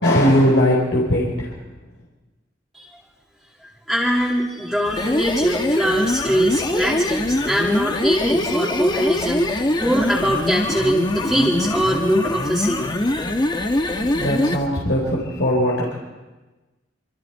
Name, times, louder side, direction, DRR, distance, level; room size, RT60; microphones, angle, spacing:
voice 1, 0.0-1.5 14.0-16.0, equal, 75° left, -4 dB, 4.5 m, -19 dB
voice 2, 3.9-13.0, equal, ahead, -6 dB, 2.6 m, -22 dB
sound 1, 4.9-14.7, left 1 dB, 25° left, 1.3 m, -23 dB
27.0 x 26.0 x 4.6 m, 1.2 s
head